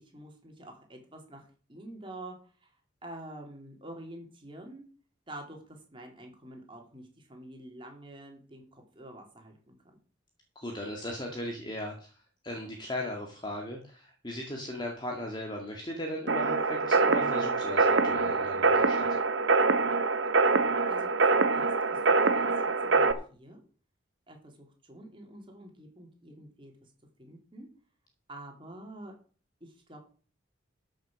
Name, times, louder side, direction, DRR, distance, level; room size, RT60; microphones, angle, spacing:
voice 1, 0.0-1.4 1.7-2.3 2.6-2.7 3.0-4.9 5.3-10.0 20.6-22.5 22.8-23.6 24.3-26.9 27.2-27.7 28.3-29.1 29.6-30.0, right 1 dB, 25° right, 2 dB, 3.3 m, -47 dB
voice 2, 10.6-12.2 12.4-19.1, left 1 dB, 25° left, 0 dB, 2.1 m, -37 dB
sound 1, 16.3-23.1, right 3 dB, 75° right, 1.1 m, -25 dB
13.5 x 6.5 x 6.4 m, 0.41 s
head